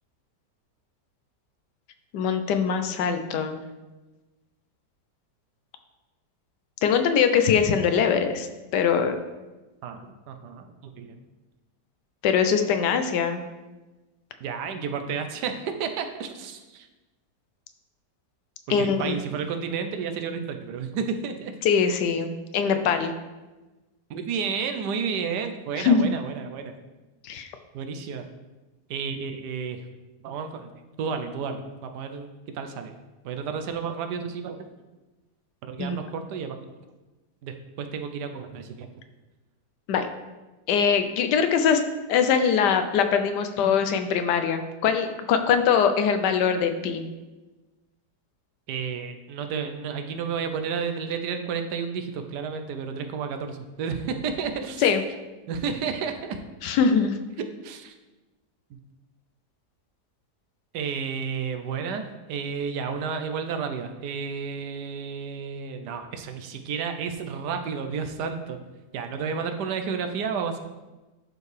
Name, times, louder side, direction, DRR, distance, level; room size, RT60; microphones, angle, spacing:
voice 1, 2.1-3.6 6.8-8.5 8.7-9.2 12.2-13.4 18.7-19.2 21.6-23.1 25.8-26.1 27.2-27.5 35.8-36.0 39.9-40.1 40.7-41.8 42.1-47.0 54.8-55.0 56.6-57.2, left 6 dB, 90° left, 8 dB, 1.3 m, -22 dB
voice 2, 9.8-11.2 14.4-16.9 18.8-21.5 24.1-26.7 27.7-28.3 28.9-29.8 30.2-30.7 31.0-32.9 33.2-34.7 35.6-36.6 37.4-38.9 48.7-54.9 55.5-56.4 57.6-57.9 60.7-68.6 68.9-70.6, right 6 dB, 80° right, 6 dB, 1.3 m, -31 dB
10.5 x 4.5 x 3.3 m, 1.1 s
omnidirectional pair, 1.8 m